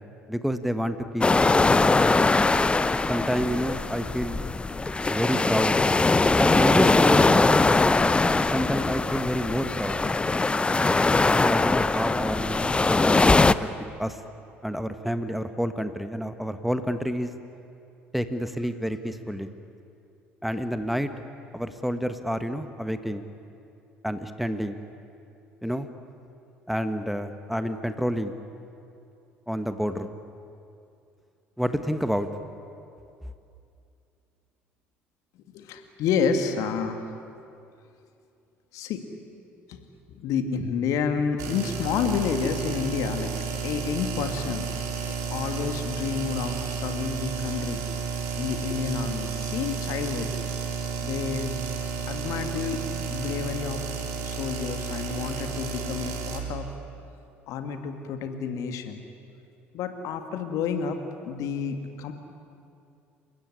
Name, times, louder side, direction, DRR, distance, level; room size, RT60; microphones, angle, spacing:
voice 1, 0.3-1.7 3.1-4.4 5.1-5.8 6.4-7.6 8.4-10.0 11.4-13.4 13.8-14.2 14.6-17.3 18.1-19.5 20.4-21.1 21.5-23.3 24.0-24.8 25.6-25.9 26.7-28.4 29.5-30.1 31.6-32.3, equal, ahead, 9 dB, 1.4 m, -28 dB
sound 1, 1.2-13.5, left 3 dB, 15° left, 0.7 m, -21 dB
voice 2, 35.5-37.0 38.7-39.0 39.7-39.8 40.1-43.3 43.6-44.7 45.3-47.8 48.4-50.3 51.0-51.6 52.1-54.0 54.2-56.7 57.5-59.0 59.7-62.1, left 6 dB, 60° left, 7 dB, 2.2 m, -29 dB
sound 2, 41.4-56.4, right 5 dB, 60° right, 3.5 m, -32 dB
28.5 x 16.0 x 10.0 m, 2.6 s
figure-of-eight pair, 60°, 6 cm